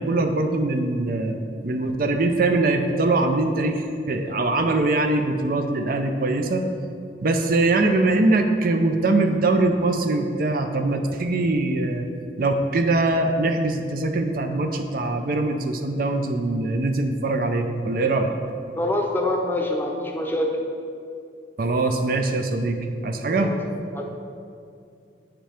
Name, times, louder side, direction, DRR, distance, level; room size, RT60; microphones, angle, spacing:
voice 1, 0.0-6.6 7.2-12.1 12.4-18.3 21.6-23.5, right 2 dB, 55° right, 6 dB, 0.5 m, -22 dB
voice 2, 18.8-20.6 23.3-23.6 23.9-24.1, left 1 dB, 10° left, 1 dB, 0.7 m, -25 dB
8.8 x 5.2 x 4.3 m, 2.4 s
head